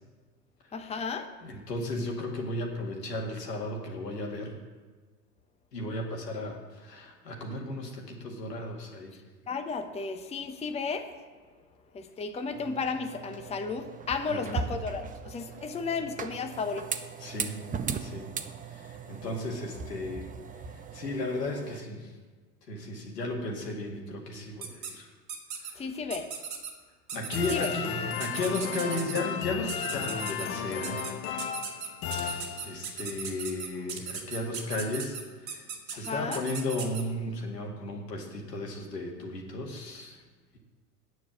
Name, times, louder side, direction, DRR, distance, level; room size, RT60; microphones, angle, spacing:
voice 1, 0.7-1.3 9.5-11.1 11.9-16.9 25.8-26.3 27.5-27.7 35.9-36.4, left 4 dB, 15° left, 6 dB, 0.8 m, -33 dB
voice 2, 1.4-4.5 5.7-9.2 14.3-14.6 17.2-17.6 18.0-18.3 18.7-20.3 20.9-22.1 22.7-25.1 27.1-31.1 32.0-40.2, left 2 dB, 85° left, 0 dB, 2.2 m, -35 dB
sound 1, 12.5-21.8, right 6 dB, 15° right, 0.6 m, -39 dB
sound 2, 24.6-24.9 25.3-25.7 26.1-26.7 27.1-27.7 28.2-29.2 29.7-30.5 30.8-31.1 31.4-37.0, right 7 dB, 80° right, 1.9 m, -37 dB
sound 3, 27.3-33.0, left 8 dB, 60° left, 1.2 m, -35 dB
9.4 x 6.4 x 7.5 m, 1.4 s
hypercardioid pair, 85°, 48 cm